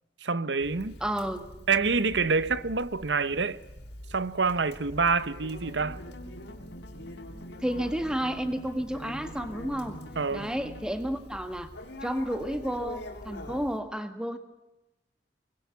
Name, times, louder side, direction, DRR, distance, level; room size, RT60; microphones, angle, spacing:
voice 1, 0.2-0.9 1.7-3.6 4.1-6.0 10.2-10.5, right 4 dB, 85° right, 1.0 m, -27 dB
Conversation, 0.6-13.8, left 1 dB, 70° left, 3.7 m, -45 dB
voice 2, 1.0-1.5 7.6-10.0 10.3-11.7 12.0-14.4, equal, 5° right, 1.7 m, -31 dB
sound 1, 5.6-11.2, left 1 dB, 85° left, 3.2 m, -46 dB
24.5 x 20.5 x 7.1 m
head